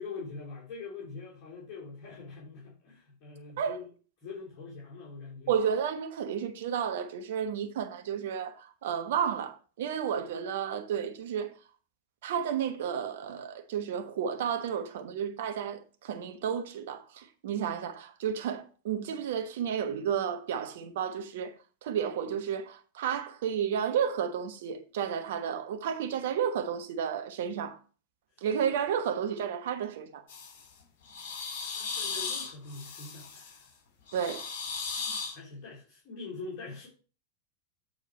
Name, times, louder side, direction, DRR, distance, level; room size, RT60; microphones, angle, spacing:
voice 1, 0.0-3.9 4.2-5.5 28.4-28.5 31.6-33.7 35.3-36.9, left 4 dB, 40° left, 3.3 m, -43 dB
voice 2, 5.5-11.5 12.2-21.5 21.8-27.8 28.4-30.2 34.1-34.4, right 8 dB, 55° right, 1.2 m, -32 dB
sound 1, 30.3-30.7 31.1-33.6 34.1-35.3, left 5 dB, 55° left, 3.3 m, -37 dB
8.9 x 4.6 x 4.5 m
figure-of-eight pair, 90°, 0 cm